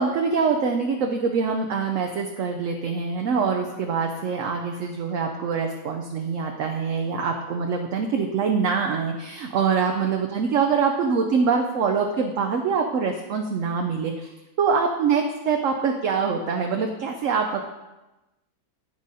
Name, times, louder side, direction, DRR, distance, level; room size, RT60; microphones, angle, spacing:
voice 1, 0.0-14.3 14.6-17.6, right 5 dB, 65° right, 3 dB, 0.9 m, -24 dB
10.5 x 5.0 x 4.1 m, 1.0 s
omnidirectional pair, 1.6 m